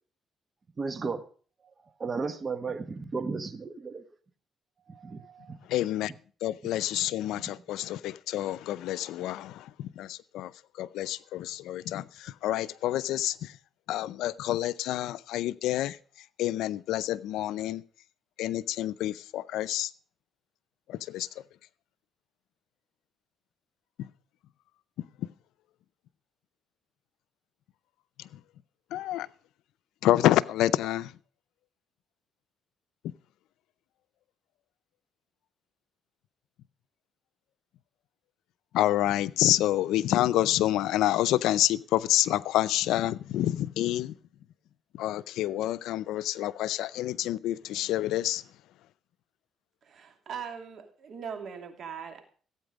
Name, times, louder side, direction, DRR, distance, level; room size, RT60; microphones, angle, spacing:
voice 1, 0.8-1.2 2.0-4.0 4.9-5.6, right 4 dB, 35° right, 1.2 m, -34 dB
voice 2, 5.7-6.1 6.4-10.5 10.8-13.5 13.9-16.0 16.4-17.8 18.4-19.9 20.9-21.3 24.0-24.1 28.9-29.3 30.0-31.1 38.7-44.1 44.9-48.4, left 14 dB, 90° left, 0.5 m, -28 dB
voice 3, 49.8-52.2, right 7 dB, 60° right, 2.8 m, -40 dB
16.0 x 8.8 x 5.2 m
cardioid pair, 90°, 0 cm